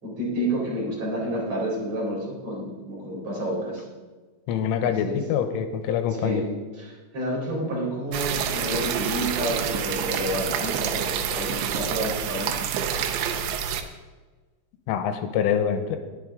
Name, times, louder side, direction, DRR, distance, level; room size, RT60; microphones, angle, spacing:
voice 1, 0.0-3.8 4.8-5.2 6.1-6.5 6.8-12.7, right 1 dB, 35° right, -5 dB, 5.0 m, -30 dB
voice 2, 4.5-6.4 14.9-16.0, left 8 dB, 85° left, 8 dB, 3.5 m, -25 dB
sound 1, 8.1-13.8, right 8 dB, 75° right, 2.9 m, -27 dB
20.5 x 7.8 x 3.8 m, 1.3 s
omnidirectional pair, 5.6 m